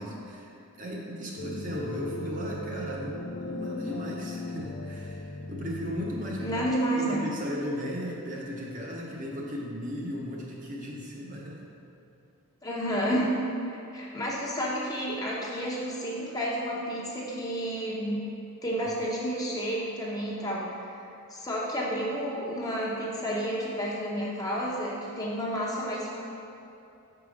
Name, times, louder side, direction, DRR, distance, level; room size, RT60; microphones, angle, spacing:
voice 1, 0.0-6.7 7.0-11.6, equal, 35° right, -3 dB, 0.8 m, -36 dB
sound 1, 1.4-6.7, left 2 dB, 45° left, 0.4 m, -38 dB
voice 2, 6.4-7.3 12.6-13.3 13.6-18.2 18.6-20.7 21.3-26.1, equal, 15° left, -5 dB, 0.9 m, -30 dB
6.1 x 4.8 x 5.1 m, 2.8 s
head